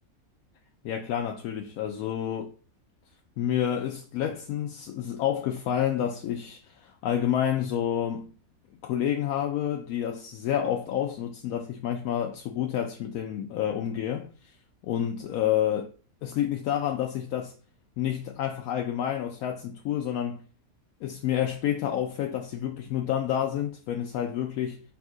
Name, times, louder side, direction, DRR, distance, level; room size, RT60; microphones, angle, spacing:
voice 1, 0.8-2.5 3.4-8.3 8.8-14.5 14.8-15.9 16.2-17.5 18.0-20.5 21.0-24.8, left 10 dB, 85° left, 1.0 m, -29 dB
3.6 x 2.7 x 4.7 m
omnidirectional pair, 1.5 m